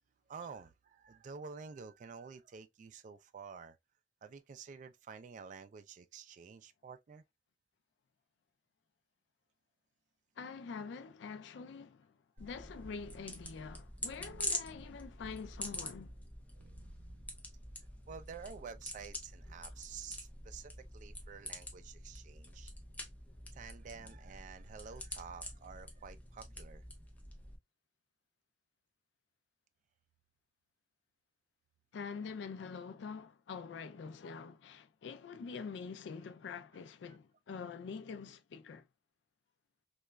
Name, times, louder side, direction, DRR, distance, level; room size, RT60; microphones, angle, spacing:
voice 1, 0.3-3.8 4.2-7.2 12.4-12.5 14.2-14.9 15.2-15.3 16.5-17.4 18.1-22.7 23.5-26.8, right 6 dB, 45° right, 0.3 m, -50 dB
voice 2, 10.4-16.1 31.9-38.9, left 5 dB, 90° left, 0.4 m, -45 dB
sound 1, 12.4-27.6, left 1 dB, 10° left, 0.5 m, -46 dB
3.0 x 2.3 x 2.2 m
head